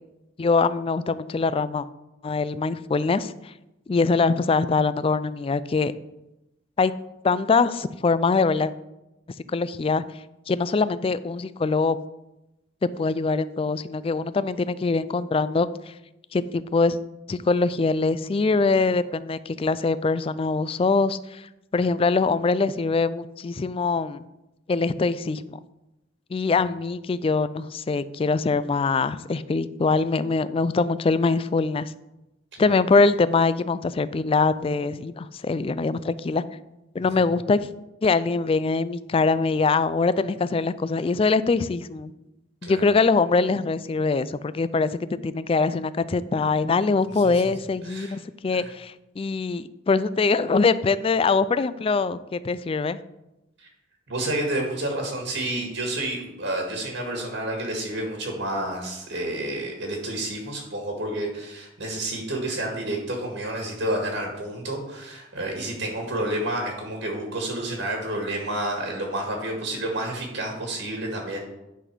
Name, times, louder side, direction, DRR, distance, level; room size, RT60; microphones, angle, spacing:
voice 1, 0.4-1.9 2.2-3.5 3.9-5.9 6.8-6.9 7.2-8.7 9.5-10.0 10.5-12.0 12.8-15.7 16.3-17.0 17.3-24.2 24.7-25.6 26.3-31.9 32.6-36.4 36.9-37.7 38.0-42.1 42.6-44.9 45.2-53.0, left 4 dB, 30° left, 15 dB, 0.3 m, -23 dB
voice 2, 47.1-47.5 47.8-48.2 48.5-48.7 53.6-53.7 54.1-71.4, right 1 dB, 65° right, 1 dB, 1.8 m, -30 dB
11.0 x 4.1 x 6.1 m, 0.94 s
head